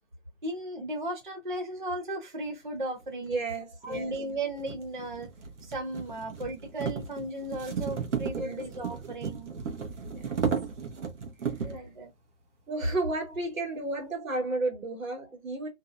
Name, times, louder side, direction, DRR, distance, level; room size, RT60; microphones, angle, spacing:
voice 1, 0.4-3.4 3.8-5.3 5.6-9.5 11.6-12.1, right 1 dB, 40° right, 0.4 m, -36 dB
sound 1, 3.0-3.1 3.8-11.9, right 6 dB, 60° right, 0.8 m, -34 dB
voice 2, 3.2-4.1 8.4-8.7 10.1-10.4 11.6-11.8 12.7-15.7, right 2 dB, 80° right, 1.3 m, -32 dB
2.6 x 2.1 x 2.4 m
hypercardioid pair, 175°, 40 cm